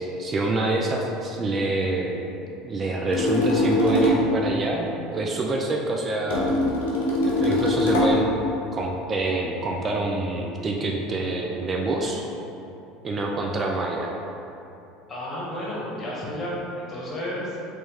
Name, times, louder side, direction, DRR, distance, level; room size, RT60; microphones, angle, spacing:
voice 1, 0.0-2.2 2.6-6.6 7.2-8.4 8.7-12.3 13.0-14.1, right 2 dB, 30° right, 0 dB, 0.3 m, -26 dB
sound 1, 3.1-4.3 6.3-8.2, left 1 dB, 70° left, 0.7 m, -22 dB
voice 2, 15.1-17.6, left 1 dB, 30° left, -5 dB, 1.1 m, -32 dB
3.2 x 3.0 x 3.4 m, 2.9 s
figure-of-eight pair, 70°, 0 cm